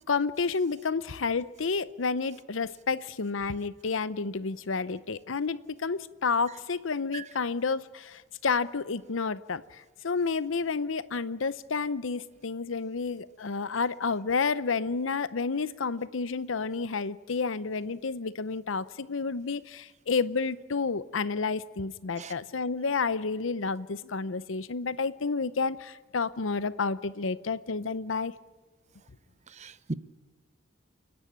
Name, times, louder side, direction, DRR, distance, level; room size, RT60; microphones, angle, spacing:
voice 1, 0.1-28.3, left 4 dB, 75° left, 16 dB, 0.7 m, -30 dB
voice 2, 29.5-29.9, right 3 dB, 35° right, 14 dB, 0.8 m, -37 dB
29.0 x 10.5 x 10.0 m, 1.4 s
head